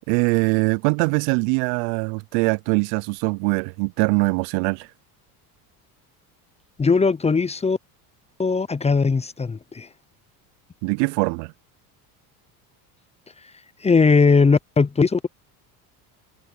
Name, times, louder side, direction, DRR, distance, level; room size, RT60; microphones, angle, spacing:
voice 1, 0.1-4.9 10.8-11.5, right 30 dB, 75° right, 0.6 m, -22 dB
voice 2, 6.8-7.8 8.4-9.9 13.8-15.3, left 4 dB, 15° left, 0.6 m, -19 dB
supercardioid pair, 95°, 44 cm